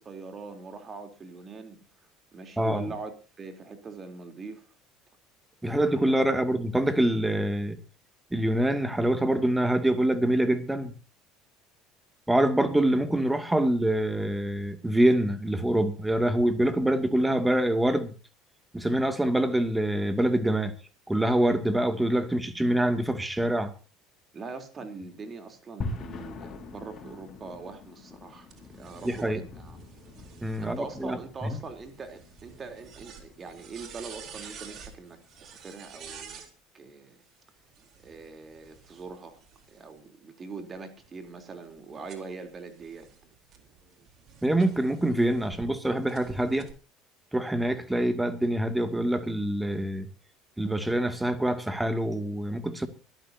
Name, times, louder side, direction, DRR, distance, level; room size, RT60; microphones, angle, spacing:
voice 1, 0.0-1.8 2.3-4.6 5.6-5.8 6.2-6.4 24.3-29.8 30.6-36.4 36.7-37.2 38.0-39.4 39.7-43.1, right 4 dB, 35° right, 3.7 m, -42 dB
voice 2, 5.6-7.8 8.3-10.9 12.3-18.1 18.7-20.7 21.1-23.7 29.0-29.4 30.4-31.6 44.4-46.7 47.3-50.1 50.6-52.9, right 1 dB, 10° right, 2.5 m, -25 dB
sound 1, 25.8-36.1, left 3 dB, 40° left, 5.2 m, -44 dB
sound 2, 28.5-36.5 37.6-40.0 40.6-45.7 46.1-46.7, right 7 dB, 50° right, 4.0 m, -49 dB
24.0 x 13.5 x 2.9 m
figure-of-eight pair, 65°, 0 cm